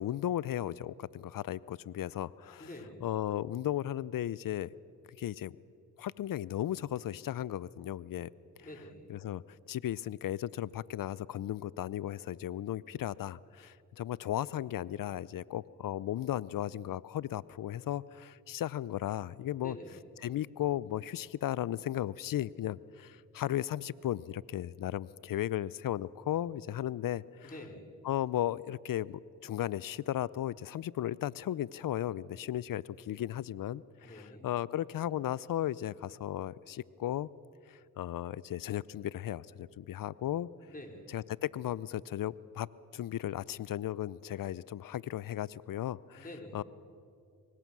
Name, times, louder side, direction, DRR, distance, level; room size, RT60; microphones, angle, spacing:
voice 1, 0.0-2.7 3.0-4.7 5.2-5.5 6.0-8.3 9.1-19.8 20.2-27.5 28.0-37.3 37.7-40.5 41.1-42.7 42.9-46.2 46.5-46.6, left 12 dB, 60° left, 21 dB, 0.7 m, -35 dB
voice 2, 2.6-3.0 8.6-9.1 19.6-20.0 27.4-27.8 34.0-34.5 40.7-41.1 46.1-46.6, left 1 dB, 20° left, 2 dB, 5.0 m, -47 dB
24.0 x 20.0 x 6.2 m, 2.4 s
supercardioid pair, 40°, 37 cm